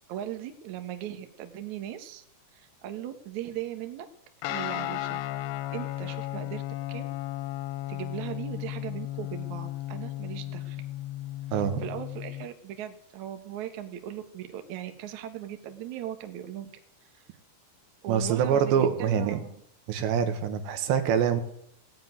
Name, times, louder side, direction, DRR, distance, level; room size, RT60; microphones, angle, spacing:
voice 1, 0.1-2.2 2.5-4.1 4.5-5.2 5.7-6.6 6.9-7.1 7.9-10.8 11.5-16.7 17.1-17.2 18.0-19.6, right 11 dB, 60° right, 7 dB, 2.0 m, -38 dB
Guitar, 4.4-12.5, left 15 dB, 80° left, 2.7 m, -35 dB
voice 2, 11.5-11.8 18.1-19.4 19.9-21.4, right 8 dB, 80° right, 8 dB, 3.5 m, -25 dB
17.0 x 7.6 x 9.5 m, 0.70 s
omnidirectional pair, 5.1 m